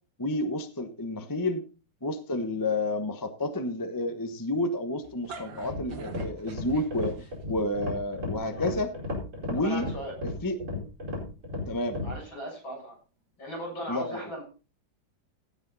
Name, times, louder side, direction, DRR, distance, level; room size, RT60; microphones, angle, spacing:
voice 1, 0.2-1.6 2.0-8.9 9.5-9.8 10.4-10.6 11.7-12.0 13.9-14.2, left 1 dB, 15° left, 8 dB, 0.9 m, -30 dB
sound 1, 5.0-7.6, right 5 dB, 70° right, 2.7 m, -44 dB
sound 2, 5.6-12.2, left 2 dB, 35° right, 5.2 m, -34 dB
voice 2, 9.5-10.2 12.0-13.0 13.4-14.4, equal, 70° left, 1 dB, 8.2 m, -37 dB
16.5 x 7.9 x 4.1 m, 0.34 s
omnidirectional pair, 2.2 m